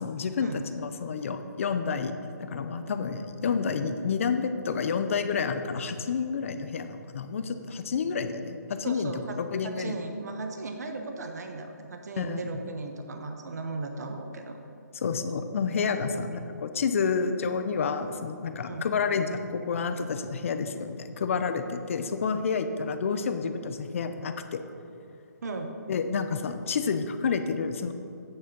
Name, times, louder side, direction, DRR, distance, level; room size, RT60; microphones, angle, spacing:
voice 1, 0.0-2.1 2.4-9.1 9.4-9.9 12.2-12.5 15.0-24.6 25.9-27.9, left 5 dB, 45° left, 9 dB, 0.7 m, -29 dB
voice 2, 8.8-14.6 16.1-16.3 18.6-18.8 25.4-25.7, right 3 dB, 60° right, 5 dB, 1.1 m, -36 dB
9.0 x 6.7 x 5.4 m, 2.6 s
hypercardioid pair, 160°, 10 cm